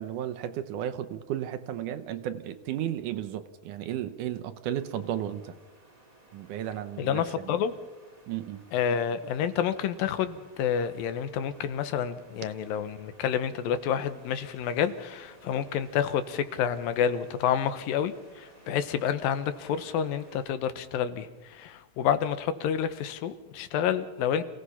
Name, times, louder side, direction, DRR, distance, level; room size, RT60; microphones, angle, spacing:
voice 1, 0.0-5.6 6.3-7.2 8.3-8.6, right 11 dB, 70° right, 10 dB, 2.2 m, -34 dB
sound 1, 4.7-20.5, right 1 dB, 10° right, 3.2 m, -57 dB
voice 2, 7.0-7.7 8.7-24.4, left 8 dB, 85° left, 12 dB, 2.8 m, -29 dB
28.0 x 17.0 x 5.7 m, 1.1 s
omnidirectional pair, 4.0 m